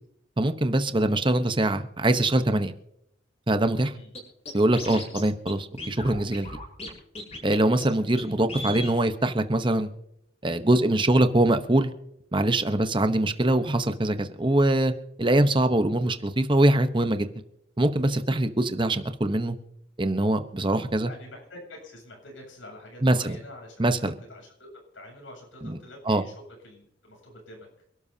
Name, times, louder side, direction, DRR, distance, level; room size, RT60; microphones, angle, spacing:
voice 1, 0.4-2.7 3.5-4.0 4.5-6.5 7.4-9.9 10.4-11.9 12.3-14.9 15.2-17.3 17.8-19.6 20.0-21.1 23.0-23.4 23.8-24.1 25.6-25.8 26.1-26.2, right 1 dB, 25° right, 9 dB, 0.9 m, -23 dB
Scratching (performance technique), 4.1-4.2 4.5-5.2 5.5-5.6 5.8-6.9 7.1-7.5 7.8-7.9 8.2-8.3 8.5-8.9, left 1 dB, 35° left, 6.8 m, -36 dB
voice 2, 21.0-23.8 24.3-26.3 26.6-27.7, left 1 dB, 80° left, 1 dB, 8.0 m, -46 dB
28.0 x 12.5 x 2.8 m, 0.75 s
head